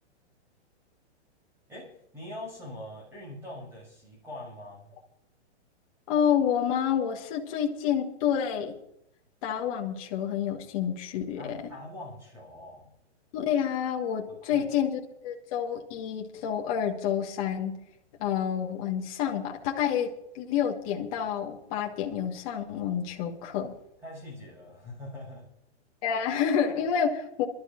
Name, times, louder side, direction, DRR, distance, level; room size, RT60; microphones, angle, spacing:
voice 1, 1.7-4.9 11.4-12.9 14.5-14.7 24.0-25.5 26.1-26.2, left 1 dB, 5° right, -3 dB, 6.4 m, -43 dB
voice 2, 6.1-8.7 9.4-11.6 13.3-17.8 18.2-23.7 26.0-27.4, left 8 dB, 30° left, 0 dB, 1.6 m, -29 dB
28.0 x 12.5 x 2.6 m, 0.77 s
hypercardioid pair, 170°, 35 cm